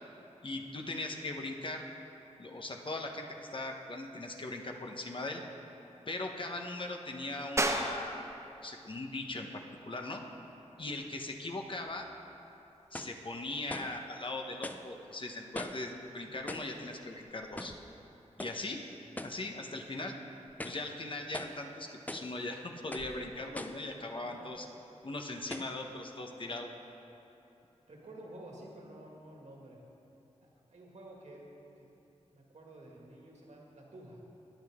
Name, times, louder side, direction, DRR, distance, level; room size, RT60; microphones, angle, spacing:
voice 1, 0.4-1.8 2.4-5.4 6.1-8.2 8.6-10.2 10.8-12.1 12.9-17.7 18.4-18.8 19.2-20.1 20.6-24.7 25.0-26.7, left 2 dB, 45° left, 2 dB, 1.1 m, -39 dB
sound 1, 7.6-17.8, right 2 dB, 25° right, 0.8 m, -41 dB
sound 2, 11.9-12.0 12.9-13.2 13.7-14.0 14.6-14.9 15.5-15.9 16.5-16.8 17.6-17.9 18.4-18.6 19.2-19.4 19.9-20.0 20.5-20.9 21.3-21.6 22.1-22.3 22.9-23.2 23.5-23.9 24.6-24.7 25.5-25.8, left 1 dB, 15° left, 0.5 m, -42 dB
voice 2, 24.2-24.5 27.9-29.8 30.4-31.9 32.2-34.2, right 1 dB, 70° right, -2 dB, 2.1 m, -51 dB
21.0 x 7.9 x 3.7 m, 2.9 s
wide cardioid pair, 85°, 12 cm